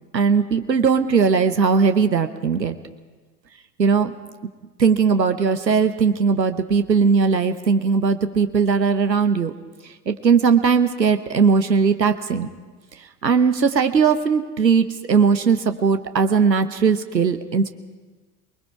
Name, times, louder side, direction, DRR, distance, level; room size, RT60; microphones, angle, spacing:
voice 1, 0.1-2.7 3.8-4.1 4.8-9.5 10.1-12.5 13.2-17.7, right 5 dB, 85° right, 9 dB, 1.0 m, -19 dB
28.5 x 20.5 x 4.7 m, 1.3 s
figure-of-eight pair, 80°, 49 cm